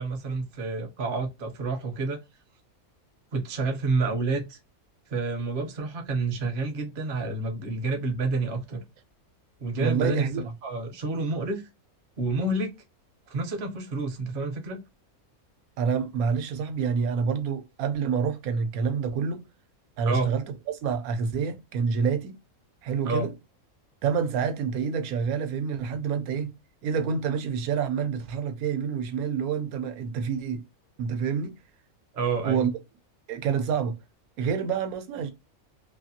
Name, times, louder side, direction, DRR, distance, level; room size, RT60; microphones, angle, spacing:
voice 1, 0.0-2.2 3.3-4.6 5.1-8.8 9.6-10.3 10.6-11.6 12.2-12.7 13.3-14.8 20.1-20.3 23.0-23.3 32.1-32.7, right 3 dB, 50° right, 0.7 m, -29 dB
voice 2, 9.8-10.5 15.8-19.4 20.0-20.4 20.8-22.4 22.8-23.3 24.0-26.5 26.8-30.6 31.0-31.5 32.4-32.7 33.3-34.0 34.4-35.3, right 6 dB, 75° right, 1.1 m, -27 dB
2.7 x 2.5 x 2.6 m
omnidirectional pair, 1.6 m